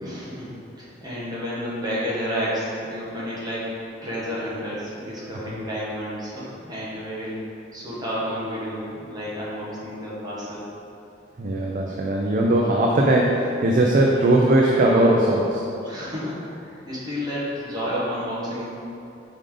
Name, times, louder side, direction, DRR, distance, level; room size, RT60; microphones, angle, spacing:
voice 1, 0.0-3.7 4.0-10.6 15.8-18.6, equal, 20° right, -8 dB, 1.3 m, -31 dB
voice 2, 11.4-15.6, right 1 dB, 45° right, -1 dB, 0.5 m, -19 dB
5.3 x 4.9 x 3.8 m, 2.7 s
head